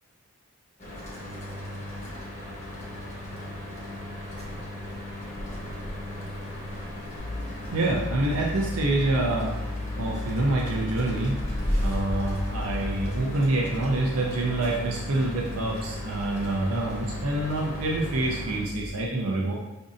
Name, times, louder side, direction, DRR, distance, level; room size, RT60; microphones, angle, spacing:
Mechanical fan, 0.8-18.6, left 1 dB, 35° left, 1.0 m, -38 dB
sound 1, 4.8-4.9 5.2-7.9 8.4-8.8 9.7-9.8 10.7-10.8 11.2-18.9, equal, 15° left, 0.7 m, -36 dB
sound 2, 7.2-13.3, left 2 dB, 85° left, 0.5 m, -34 dB
voice 1, 7.7-9.5 10.0-11.4 11.7-19.5, right 2 dB, 85° right, -1 dB, 0.5 m, -27 dB
5.0 x 2.6 x 2.5 m, 1.0 s
head